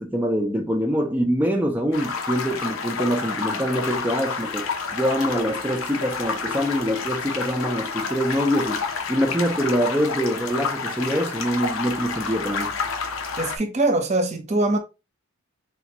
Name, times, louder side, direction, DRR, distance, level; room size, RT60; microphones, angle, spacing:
voice 1, 0.0-4.7 4.9-12.7, equal, 10° right, 0.5 m, -24 dB
sound 1, 1.9-13.6, left 4 dB, 85° left, 0.8 m, -29 dB
voice 2, 13.4-14.8, right 2 dB, 35° right, 0.8 m, -22 dB
3.7 x 3.4 x 2.9 m
head